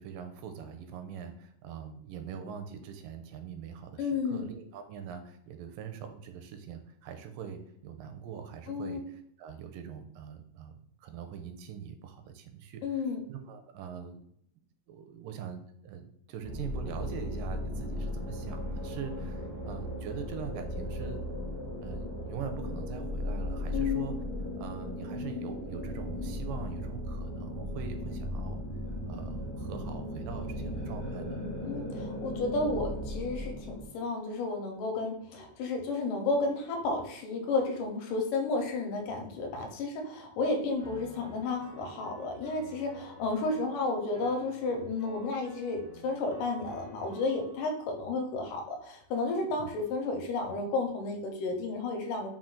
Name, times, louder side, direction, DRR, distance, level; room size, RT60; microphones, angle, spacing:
voice 1, 0.0-14.2 14.9-21.3 21.8-24.2 24.6-28.6 29.1-31.4 49.6-49.7, right 7 dB, 85° right, 6 dB, 2.2 m, -43 dB
voice 2, 4.0-4.5 8.7-9.0 12.8-13.2 23.7-24.1 31.7-52.3, left 3 dB, 80° left, 3 dB, 2.2 m, -32 dB
sound 1, 16.4-33.8, left 1 dB, 60° right, 0.6 m, -36 dB
Piano, 40.8-47.6, left 1 dB, 65° left, 1.0 m, -51 dB
5.8 x 2.3 x 3.8 m, 0.69 s
omnidirectional pair, 3.8 m